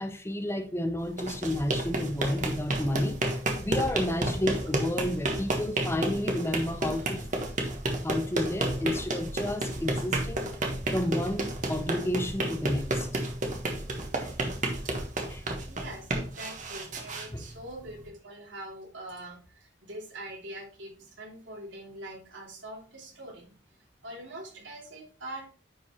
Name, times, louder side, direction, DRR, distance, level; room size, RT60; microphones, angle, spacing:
voice 1, 0.0-3.2 3.6-7.2 8.0-10.5 10.9-13.1 14.2-14.3 15.3-15.4 17.3-17.4, left 1 dB, 15° left, 0.7 m, -31 dB
sound 1, 1.1-18.0, right 1 dB, 40° right, 1.5 m, -31 dB
voice 2, 15.7-25.5, right 1 dB, 75° right, 3.0 m, -43 dB
10.0 x 5.1 x 3.1 m
head